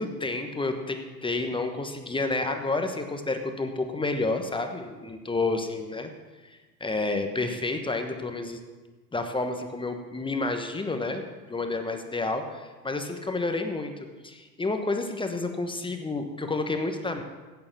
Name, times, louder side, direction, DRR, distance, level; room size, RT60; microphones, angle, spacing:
voice 1, 0.0-6.1 6.4-8.6 9.1-13.9 14.2-17.2, left 3 dB, 10° left, 6 dB, 1.1 m, -30 dB
14.0 x 9.3 x 5.9 m, 1.3 s
hypercardioid pair, 90°, 49 cm